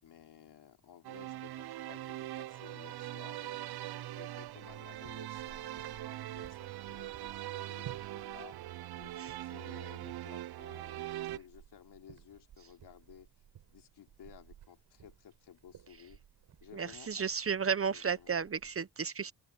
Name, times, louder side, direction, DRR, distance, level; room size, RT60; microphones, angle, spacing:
voice 1, 0.0-3.6 4.1-8.6 9.0-13.3 13.7-16.2 16.6-17.3 17.9-18.3, left 9 dB, 75° left, 4.3 m, -56 dB
sound 1, 1.0-11.4, right 14 dB, 70° right, 0.6 m, -42 dB
sound 2, 4.8-18.8, right 10 dB, 85° right, 6.8 m, -57 dB
voice 2, 16.7-19.3, right 6 dB, 35° right, 0.9 m, -33 dB
open air
cardioid pair, 95°, 40 cm